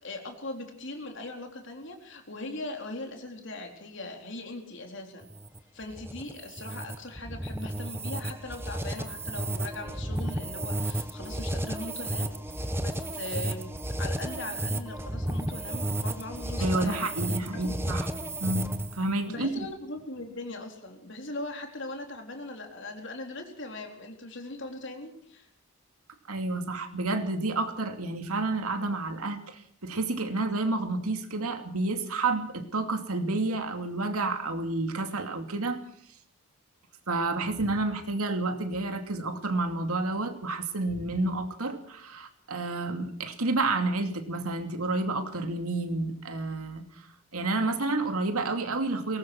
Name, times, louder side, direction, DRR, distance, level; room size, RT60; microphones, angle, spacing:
voice 1, 0.0-5.3 5.7-13.7 14.0-17.7 19.3-25.5, left 2 dB, 55° left, 3 dB, 4.0 m, -40 dB
sound 1, 5.2-19.1, right 1 dB, 10° right, 1.2 m, -33 dB
voice 2, 16.6-19.5 26.3-35.8 37.1-47.0 47.3-49.2, right 2 dB, 80° right, 6 dB, 2.6 m, -30 dB
22.5 x 18.5 x 6.1 m, 0.67 s
head